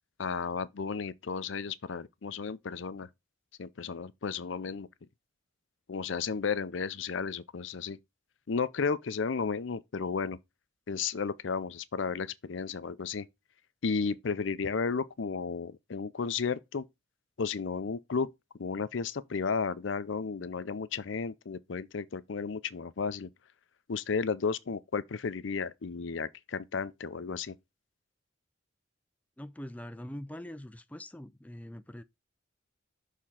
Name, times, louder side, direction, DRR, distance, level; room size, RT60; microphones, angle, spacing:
voice 1, 0.2-3.1 3.6-4.9 5.9-8.0 8.5-10.4 10.9-13.3 13.8-16.8 17.4-18.3 18.6-23.3 23.9-27.6, left 5 dB, 65° left, 0.5 m, -33 dB
voice 2, 29.4-32.0, left 1 dB, 5° left, 0.4 m, -43 dB
6.6 x 3.7 x 5.7 m
head